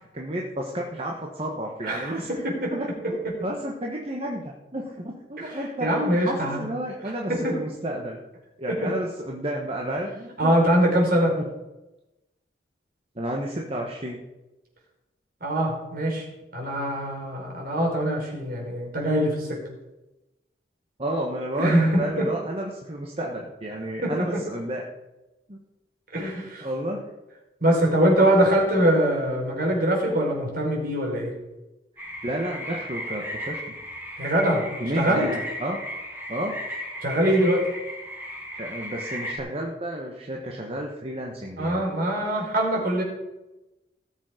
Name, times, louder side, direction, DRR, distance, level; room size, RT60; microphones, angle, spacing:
voice 1, 0.1-2.3 2.7-8.2 8.6-10.5 13.1-14.2 21.0-24.8 25.5-25.6 26.6-27.0 32.0-33.6 34.8-35.8 36.3-36.5 38.5-41.8, right 1 dB, 35° right, -1 dB, 1.4 m, -31 dB
voice 2, 1.8-2.7 5.4-6.6 7.3-7.6 8.7-8.9 10.4-11.3 15.4-16.2 16.5-19.6 21.6-22.2 24.0-24.1 26.1-26.7 27.6-31.3 34.2-34.7 35.0-35.2 37.0-37.6 41.6-43.0, right 1 dB, 55° right, -1 dB, 4.5 m, -23 dB
sound 1, 32.0-39.4, equal, 10° right, 4.9 m, -36 dB
18.0 x 7.3 x 5.1 m, 1.0 s
head